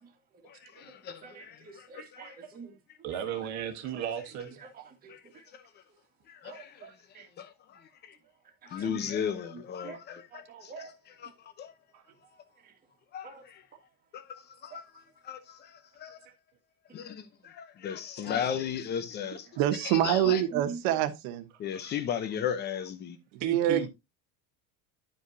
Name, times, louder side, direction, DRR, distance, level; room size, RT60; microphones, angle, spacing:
voice 1, 0.5-1.9 2.1-2.3 5.1-5.2 6.3-6.7 7.4-7.5 8.7-10.2 10.6-10.9 11.2-11.3 11.6-11.7 13.1-13.6 14.1-14.2 14.6-14.8 15.2-15.7 16.0-16.2 16.9-19.5 20.0-20.4 21.6-23.2, left 8 dB, 25° left, 0.8 m, -35 dB
voice 2, 1.2-2.7 4.8-5.1 6.5-6.9 7.1-7.3 8.8-9.1 9.8-10.0 10.3-10.9 13.2-13.4 18.2-18.4 20.5-20.8, right 5 dB, 20° right, 1.8 m, -44 dB
voice 3, 3.0-4.6 11.9-12.0 21.7-21.9 23.4-23.9, right 9 dB, 40° right, 1.4 m, -35 dB
voice 4, 19.6-21.5 23.3-23.9, right 11 dB, 60° right, 1.1 m, -26 dB
11.5 x 5.3 x 2.7 m
cardioid pair, 175°, 40 cm